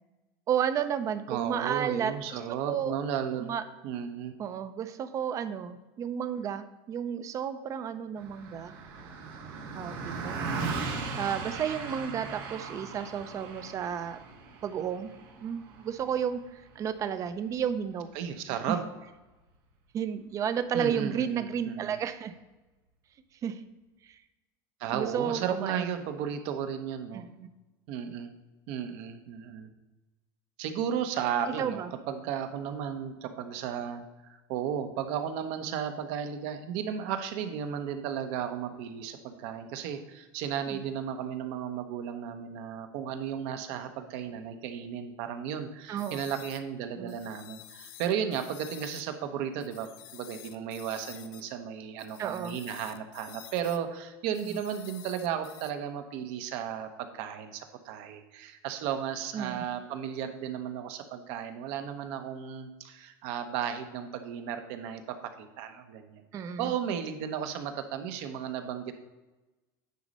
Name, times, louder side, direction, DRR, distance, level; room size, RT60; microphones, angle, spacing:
voice 1, 0.5-2.4 2.7-3.0 3.4-3.6 4.4-8.7 9.7-10.4 11.1-14.2 14.6-15.1 15.4-18.1 18.7-18.8 19.9-22.3 23.4-23.6 24.1-24.2 24.9-25.9 27.1-27.5 31.6-31.9 40.7-40.8 45.9-46.2 47.0-47.1 52.2-52.6 54.4-54.6 59.3-59.6 66.3-66.7, right 8 dB, 30° right, 11 dB, 0.5 m, -32 dB
voice 2, 1.3-3.6 3.8-4.3 18.1-18.8 20.7-22.0 24.8-27.3 27.9-28.3 28.7-29.7 30.6-68.9, right 8 dB, 60° right, 7 dB, 1.0 m, -34 dB
Car passing by, 8.2-17.8, right 4 dB, 85° right, 1.7 m, -38 dB
sound 1, 46.0-49.1 49.6-51.4 52.0-53.8 54.3-55.7, left 13 dB, 70° left, 0.6 m, -49 dB
9.5 x 4.0 x 5.3 m, 1.1 s
supercardioid pair, 150°, 11 cm